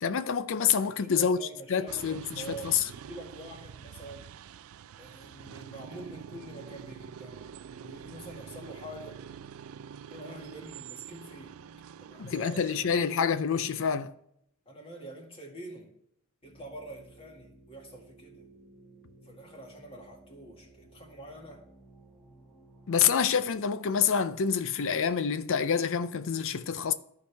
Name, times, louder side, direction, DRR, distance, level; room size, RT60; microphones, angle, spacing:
voice 1, 0.0-2.9 12.2-14.1 22.9-26.9, left 7 dB, 60° left, 0.5 m, -27 dB
voice 2, 0.8-4.3 5.0-9.2 10.1-11.6 12.0-13.0 14.7-15.9 16.4-18.5 19.2-21.6, right 1 dB, 25° left, 2.0 m, -46 dB
sound 1, 1.9-13.2, right 7 dB, 70° right, 0.3 m, -46 dB
sound 2, 16.4-23.5, right 2 dB, 5° left, 1.6 m, -56 dB
14.0 x 4.8 x 3.4 m
head